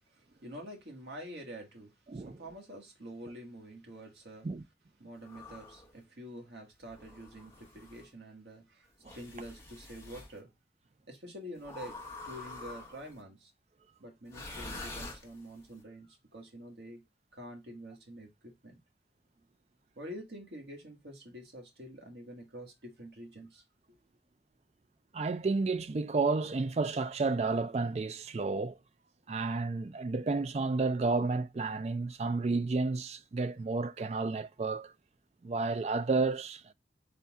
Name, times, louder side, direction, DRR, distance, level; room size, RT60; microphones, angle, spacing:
voice 1, 0.0-4.5 5.0-10.5 11.1-13.5 14.0-17.0 17.3-18.8 19.9-23.6, equal, 75° right, 1.6 m, -47 dB
sound 1, 5.2-5.9 6.9-8.1 9.0-10.3 11.6-13.2 14.3-15.7, left 2 dB, 15° left, 0.9 m, -46 dB
voice 2, 25.1-28.8 29.3-34.9 35.4-36.7, right 3 dB, 35° right, 0.3 m, -31 dB
4.2 x 3.4 x 3.5 m
head